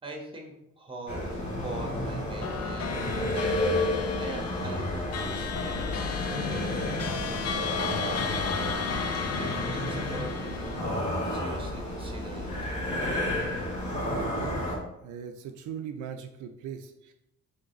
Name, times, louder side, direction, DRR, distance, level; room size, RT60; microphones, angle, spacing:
voice 1, 0.0-6.1 6.4-10.9 11.2-12.7, right 1 dB, 15° right, 2 dB, 1.2 m, -43 dB
sound 1, 1.1-14.8, left 1 dB, 70° left, 1.5 m, -31 dB
sound 2, 2.4-12.0, left 6 dB, 55° left, 0.6 m, -34 dB
voice 2, 14.1-17.1, right 7 dB, 80° right, 6 dB, 0.5 m, -39 dB
3.9 x 3.4 x 3.8 m, 0.83 s
cardioid pair, 90°, 30 cm